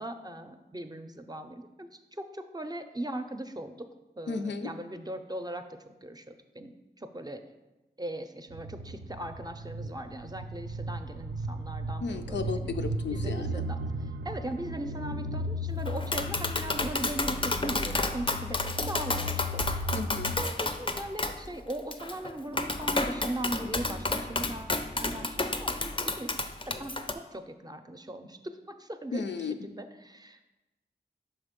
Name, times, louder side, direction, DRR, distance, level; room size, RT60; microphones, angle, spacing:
voice 1, 0.0-3.9 4.2-5.6 6.0-7.4 8.0-12.7 13.1-13.8 14.2-18.6 18.9-19.9 20.4-26.3 26.7-29.2 29.6-30.5, right 1 dB, 20° right, 7 dB, 0.5 m, -39 dB
voice 2, 4.3-4.7 12.0-13.6 19.9-20.3 29.1-29.6, left 4 dB, 85° left, 7 dB, 0.5 m, -34 dB
sound 1, 8.5-20.4, equal, 85° right, 0.4 m, -36 dB
Tap, 15.9-27.1, left 2 dB, 30° left, 0.5 m, -31 dB
5.5 x 4.0 x 5.2 m, 1.0 s
cardioid pair, 50°, 18 cm